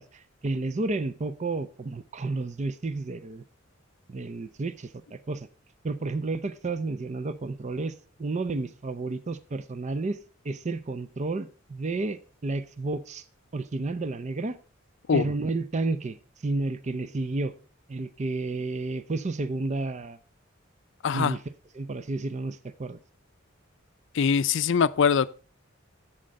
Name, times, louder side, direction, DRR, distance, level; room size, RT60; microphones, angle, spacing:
voice 1, 0.0-3.4 4.1-5.5 5.8-10.2 10.4-13.2 13.5-14.6 15.1-16.2 16.4-17.5 17.9-20.2 21.1-21.4 21.7-23.0, right 3 dB, 35° right, 0.5 m, -31 dB
voice 2, 21.0-21.4 24.1-25.3, left 6 dB, 65° left, 0.4 m, -23 dB
7.8 x 7.5 x 5.2 m
head